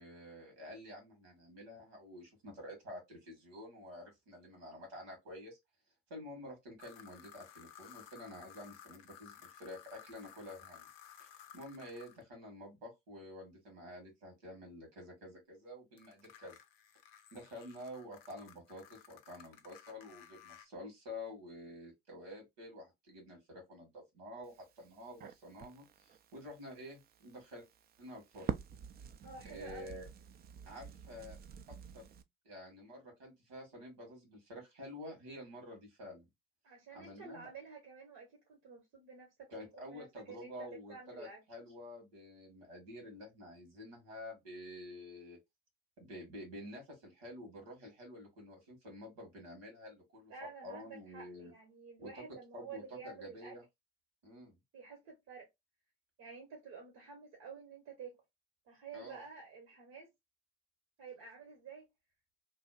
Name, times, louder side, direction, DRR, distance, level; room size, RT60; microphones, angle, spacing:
voice 1, 0.0-5.6 6.1-10.9 11.2-16.6 17.3-27.7 28.0-28.6 29.4-30.1 30.7-31.4 31.7-32.1 32.4-36.3 36.9-37.5 39.5-45.4 46.0-50.3 50.6-51.5 52.0-52.2 52.5-53.6 54.2-54.6 58.9-59.2, left 1 dB, 80° right, 1.5 m, -49 dB
sound 1, 6.8-12.2 16.0-20.7, left 9 dB, 80° left, 0.5 m, -57 dB
Crackle, 24.4-32.2, right 8 dB, 35° right, 0.4 m, -47 dB
voice 2, 29.2-30.0 36.6-39.5 39.9-41.4 50.3-53.5 54.7-55.5 56.2-58.2 58.7-60.1 61.0-61.9, right 5 dB, 65° right, 1.0 m, -50 dB
2.8 x 2.2 x 2.2 m
hypercardioid pair, 50°, 29 cm